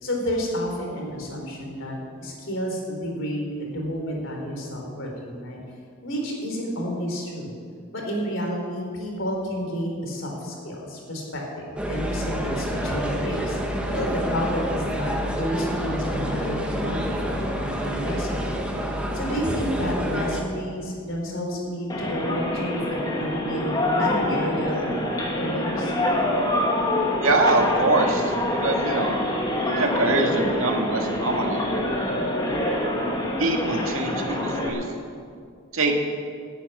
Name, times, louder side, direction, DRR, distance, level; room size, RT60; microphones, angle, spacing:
voice 1, 0.0-5.6 6.0-7.5 7.9-13.6 13.9-18.6 19.1-24.9 25.4-25.9, equal, 65° left, 0 dB, 3.7 m, -30 dB
sound 1, 11.8-20.4, equal, 5° right, 1.3 m, -28 dB
sound 2, 21.9-34.7, left 1 dB, 20° left, 1.9 m, -26 dB
voice 2, 27.2-29.1 29.6-31.8 33.4-34.9 35.7-35.9, right 2 dB, 75° right, 2 dB, 1.9 m, -24 dB
11.5 x 9.3 x 9.6 m, 2.2 s
head